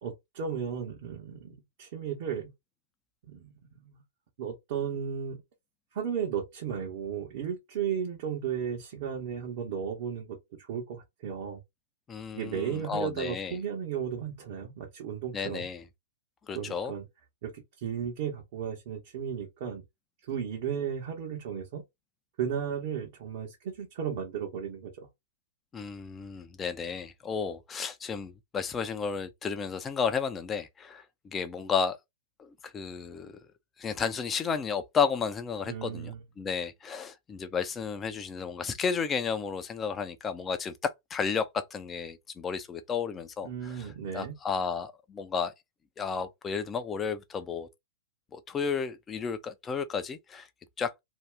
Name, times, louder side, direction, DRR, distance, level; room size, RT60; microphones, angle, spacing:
voice 1, 0.0-2.5 3.2-4.0 4.4-5.4 5.9-11.6 12.3-15.7 16.5-17.1 17.4-19.8 20.2-21.8 22.4-25.1 35.6-36.2 43.4-44.3, right 7 dB, 55° right, 1.1 m, -35 dB
voice 2, 12.1-13.5 15.3-15.8 16.5-16.9 25.7-32.0 32.4-33.4 33.8-43.9 44.1-45.5 46.0-47.7 48.3-50.5 50.8-50.9, left 6 dB, 20° left, 0.6 m, -32 dB
2.8 x 2.3 x 3.4 m
hypercardioid pair, 115°, 0 cm